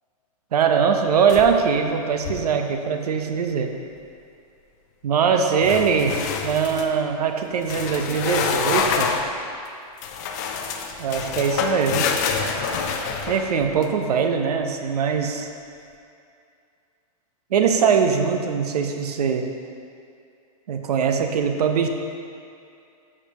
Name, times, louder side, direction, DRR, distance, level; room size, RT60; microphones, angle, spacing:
voice 1, 0.5-3.7 5.0-9.1 11.0-12.1 13.3-15.5 17.5-19.5 20.7-21.9, right 6 dB, 90° right, 5 dB, 0.9 m, -21 dB
sound 1, 1.3-1.8 2.1-2.5 5.6-6.9 7.6-9.3 10.0-13.9, left 6 dB, 30° left, 0.5 m, -27 dB
12.0 x 6.7 x 3.0 m, 2.5 s
supercardioid pair, 175°, 20 cm